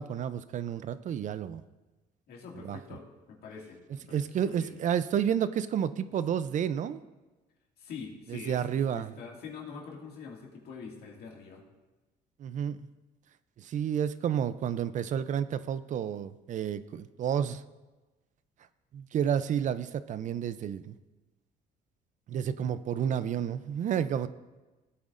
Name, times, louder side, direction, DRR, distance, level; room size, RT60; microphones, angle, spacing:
voice 1, 0.0-1.6 2.5-2.8 4.1-7.0 8.3-9.1 12.4-12.9 13.6-17.6 18.9-21.0 22.3-24.3, right 9 dB, 45° right, 14 dB, 0.5 m, -30 dB
voice 2, 2.3-3.8 4.1-4.8 7.8-11.6, left 5 dB, 70° left, -1 dB, 2.1 m, -45 dB
17.0 x 8.6 x 2.5 m, 1.2 s
cardioid pair, 110°, 17 cm